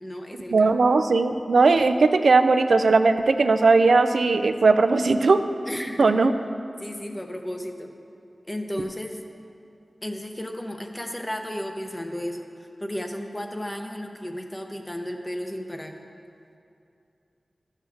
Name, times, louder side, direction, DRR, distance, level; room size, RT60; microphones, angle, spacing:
voice 1, 0.0-0.7 5.7-6.2 6.8-7.9 8.5-9.2 10.0-12.4 12.8-15.9, equal, 15° left, 4 dB, 0.8 m, -33 dB
voice 2, 0.5-5.4 6.0-6.3, right 3 dB, 85° right, 9 dB, 0.4 m, -18 dB
13.5 x 6.5 x 3.5 m, 2.6 s
wide cardioid pair, 85°, 0 cm